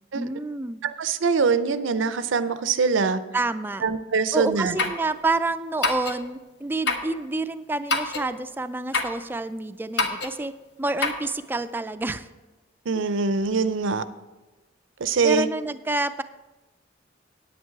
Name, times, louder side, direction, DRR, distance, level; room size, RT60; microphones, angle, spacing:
voice 1, 0.1-0.8 3.3-3.8 4.3-10.5 10.8-12.3 15.2-16.2, right 2 dB, 10° right, 11 dB, 0.3 m, -28 dB
voice 2, 0.8-3.2 3.8-4.8 12.9-14.0 15.0-15.5, right 4 dB, 90° right, 13 dB, 0.6 m, -23 dB
sound 1, 4.8-5.0 5.8-6.2 6.9-7.1 7.9-8.3 8.9-9.2 10.0-10.4 11.0-11.3, left 3 dB, 65° left, 0.9 m, -25 dB
9.6 x 8.8 x 4.7 m, 1.1 s
head